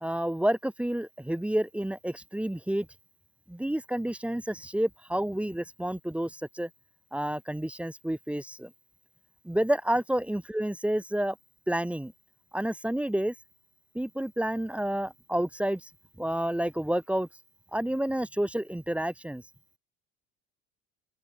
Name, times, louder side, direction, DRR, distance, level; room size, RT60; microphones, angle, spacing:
voice 1, 0.0-2.9 3.5-6.7 7.1-8.7 9.4-11.4 11.7-12.1 12.5-13.3 13.9-15.9 16.2-17.3 17.7-19.4, right 1 dB, 5° right, 0.5 m, -29 dB
open air
hypercardioid pair, 65°, 33 cm